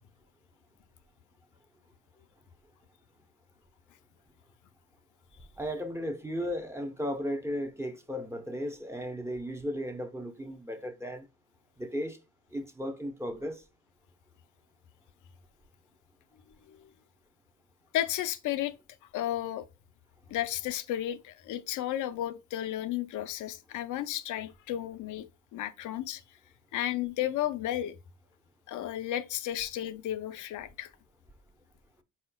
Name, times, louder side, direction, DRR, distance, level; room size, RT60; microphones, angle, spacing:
voice 1, 5.6-11.2 11.8-12.2 12.5-13.6, equal, 10° right, 0.7 m, -35 dB
voice 2, 17.9-18.7 19.1-19.6 20.3-25.3 25.5-26.2 26.7-28.0 28.7-30.9, left 12 dB, 80° left, 0.5 m, -33 dB
4.5 x 4.2 x 2.2 m
cardioid pair, 90°, 30 cm